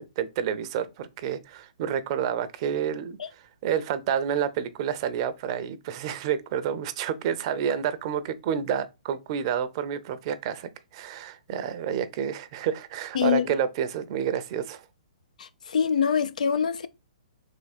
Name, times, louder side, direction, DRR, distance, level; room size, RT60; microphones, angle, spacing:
voice 1, 0.0-14.8, right 8 dB, 40° right, 0.6 m, -29 dB
voice 2, 15.7-16.9, left 7 dB, 75° left, 0.4 m, -23 dB
3.6 x 3.1 x 4.2 m
hypercardioid pair, 135°, 4 cm